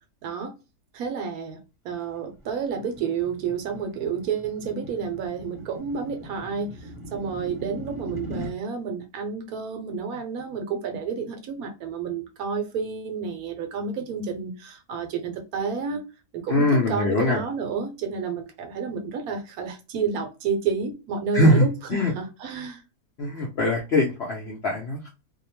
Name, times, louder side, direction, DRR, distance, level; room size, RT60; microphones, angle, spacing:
voice 1, 0.2-0.5 0.9-1.6 1.8-16.0 16.3-22.8, right 6 dB, 70° right, 1.1 m, -30 dB
sound 1, 2.1-8.5, equal, ahead, 0.8 m, -40 dB
voice 2, 16.5-17.4 21.3-22.1 23.2-25.1, left 1 dB, 65° left, 0.6 m, -22 dB
2.7 x 2.1 x 2.9 m
omnidirectional pair, 1.8 m